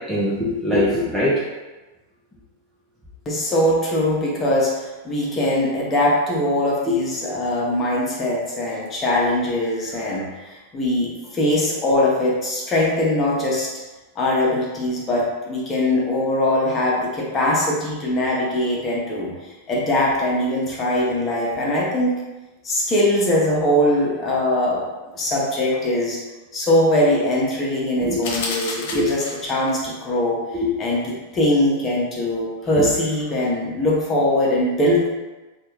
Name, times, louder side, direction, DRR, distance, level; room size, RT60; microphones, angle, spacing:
voice 1, 0.1-1.4 6.9-7.0 28.0-28.2 29.0-29.1 30.5-30.7 32.8-32.9, left 1 dB, ahead, -9 dB, 0.7 m, -21 dB
voice 2, 3.3-13.7 14.2-19.3 19.7-22.2 22.6-24.8 25.1-26.2 26.5-30.4 30.8-35.1, left 1 dB, 25° left, -4 dB, 0.9 m, -21 dB
sound 1, 28.2-29.7, left 3 dB, 50° left, 0.6 m, -30 dB
3.2 x 2.5 x 3.1 m, 1.1 s
figure-of-eight pair, 90°, 0 cm